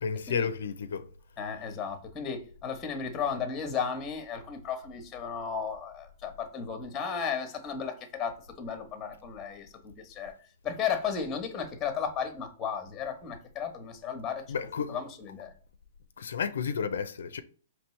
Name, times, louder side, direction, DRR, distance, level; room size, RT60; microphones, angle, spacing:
voice 1, 0.0-1.0 14.5-15.0 16.2-17.4, left 6 dB, 80° left, 0.4 m, -32 dB
voice 2, 1.4-10.3 10.6-14.4 14.9-15.5, left 6 dB, 15° left, 1.0 m, -34 dB
4.5 x 3.1 x 3.1 m
hypercardioid pair, 150°, 0 cm